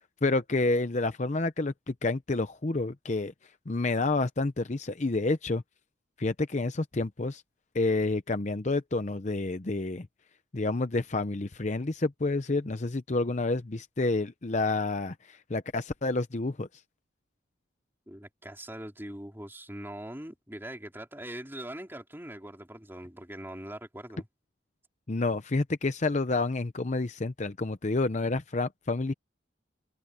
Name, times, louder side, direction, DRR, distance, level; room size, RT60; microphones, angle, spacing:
voice 1, 0.2-3.3 3.7-5.6 6.2-7.4 7.7-10.1 10.5-16.7 25.1-29.1, left 2 dB, 40° left, 0.7 m, -29 dB
voice 2, 18.1-24.3, right 1 dB, 10° right, 4.2 m, -42 dB
head